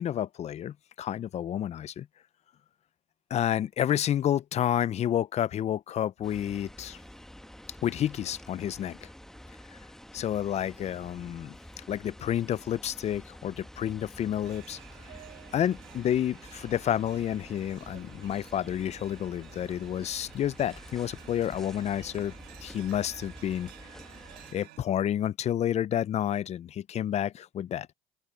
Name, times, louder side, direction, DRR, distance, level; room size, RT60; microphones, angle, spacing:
voice 1, 0.0-2.1 3.3-7.0 7.8-9.1 10.1-11.6 11.9-14.8 15.5-22.3 22.6-23.7 24.5-27.9, left 10 dB, 40° left, 0.4 m, -30 dB
sound 1, 6.2-24.5, equal, 5° left, 1.0 m, -49 dB
sound 2, 14.4-24.8, right 15 dB, 85° right, 1.4 m, -52 dB
open air
cardioid pair, 110°, 17 cm